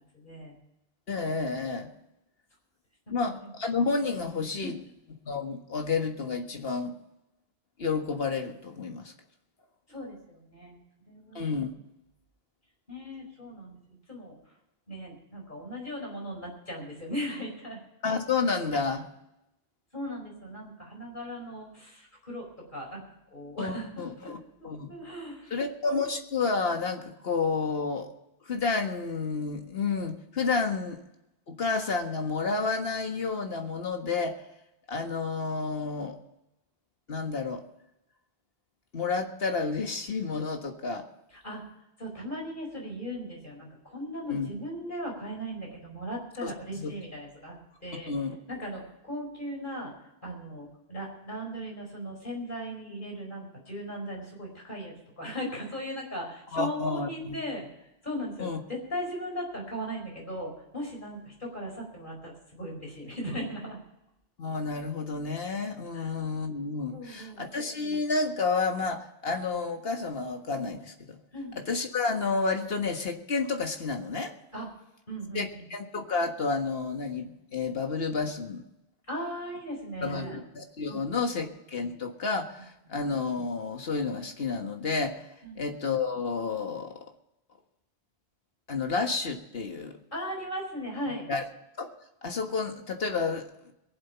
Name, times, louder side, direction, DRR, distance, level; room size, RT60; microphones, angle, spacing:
voice 1, 0.1-0.5 3.1-3.2 3.4-3.5 4.6-4.7 9.9-10.8 11.0-11.5 12.9-14.4 14.9-17.8 19.9-23.0 23.3-23.9 24.2-24.3 24.6-25.5 41.4-41.6 42.0-47.6 47.8-48.1 48.5-49.9 50.2-57.7 58.0-63.8 65.9-66.1 66.9-67.5 71.3-71.6 74.5-74.7 75.1-75.7 79.1-80.4 80.9-81.4 82.8-82.9 85.4-85.6 90.1-91.3, equal, 50° left, 0 dB, 4.9 m, -38 dB
voice 2, 1.1-1.9 3.1-4.8 5.3-7.0 7.8-9.1 11.3-11.7 18.0-19.0 23.6-24.4 24.6-24.9 25.5-28.1 28.5-31.0 31.5-34.4 34.9-36.2 37.1-37.6 38.9-41.1 44.3-44.5 46.4-46.9 47.9-48.4 56.5-57.4 58.4-58.6 64.4-71.2 71.7-74.3 75.3-78.6 80.0-85.3 85.6-87.1 88.7-90.0 91.3-91.4 91.8-91.9 92.2-93.7, left 4 dB, 65° left, 5 dB, 1.8 m, -30 dB
22.5 x 7.8 x 5.7 m, 0.88 s
omnidirectional pair, 1.1 m